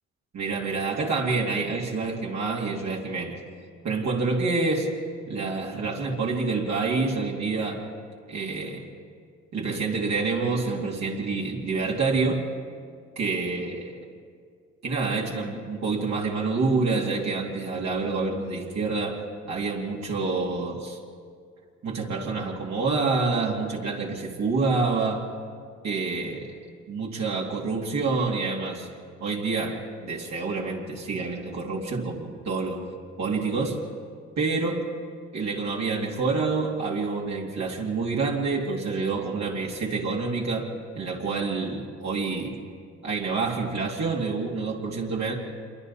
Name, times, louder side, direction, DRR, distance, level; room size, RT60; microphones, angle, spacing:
voice 1, 0.3-3.4 3.8-4.9 5.3-7.9 8.3-8.8 9.5-12.5 13.2-13.9 14.8-21.0 21.8-25.3 25.8-26.5 26.9-28.9 29.2-32.8 33.2-33.8 34.4-34.9 35.3-42.6 43.0-45.4, right 4 dB, 60° right, -3 dB, 2.7 m, -27 dB
27.0 x 23.5 x 4.2 m, 2.2 s
cardioid pair, 90°, 30 cm